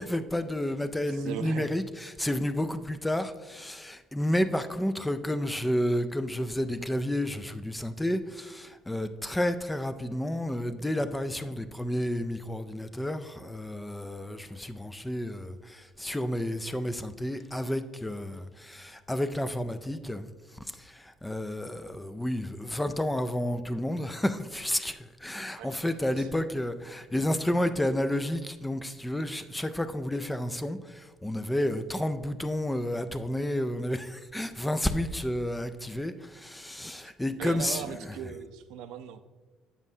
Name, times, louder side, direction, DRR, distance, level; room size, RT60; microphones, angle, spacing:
voice 1, 0.0-20.3 20.6-37.8, left 1 dB, 5° left, 0.3 m, -31 dB
voice 2, 1.1-1.7 25.6-25.8 26.2-26.3 37.0-37.1 37.4-39.2, right 9 dB, 80° right, 0.4 m, -39 dB
8.3 x 7.3 x 2.7 m
cardioid pair, 155°, 0 cm